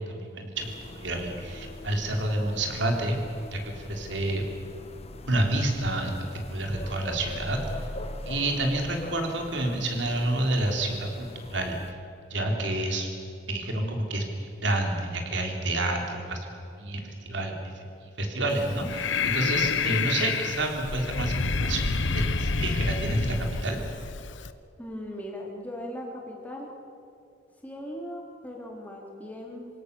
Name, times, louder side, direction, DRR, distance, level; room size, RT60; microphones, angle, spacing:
voice 1, 0.0-3.2 3.5-4.5 5.3-7.9 8.3-11.8 12.3-13.1 13.5-23.8, right 1 dB, 65° right, 2 dB, 3.8 m, -29 dB
sound 1, 0.5-11.9, left 1 dB, 30° left, 1.2 m, -42 dB
Breathing, 18.5-24.5, left 4 dB, 70° left, 0.9 m, -28 dB
voice 2, 24.8-26.7 27.6-29.7, left 1 dB, 10° left, -2 dB, 3.7 m, -38 dB
27.0 x 17.0 x 7.0 m, 2.6 s
head